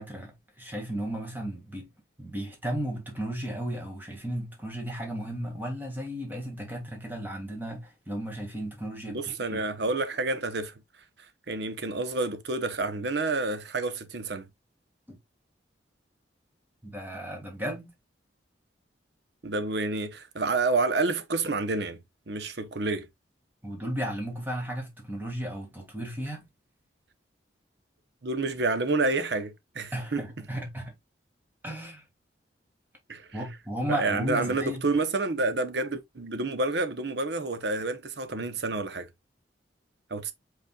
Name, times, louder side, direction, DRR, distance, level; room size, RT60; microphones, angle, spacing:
voice 1, 0.0-1.9 2.2-9.2 9.5-9.6 16.8-17.9 23.6-26.5 29.9-30.9 31.6-32.0 33.3-34.8, right 1 dB, 10° right, 1.9 m, -34 dB
voice 2, 9.1-10.7 11.5-14.5 19.4-22.0 22.3-23.1 28.2-30.3 33.1-33.4 33.9-39.1 40.1-40.3, right 3 dB, 65° right, 0.9 m, -29 dB
5.3 x 4.2 x 2.3 m
head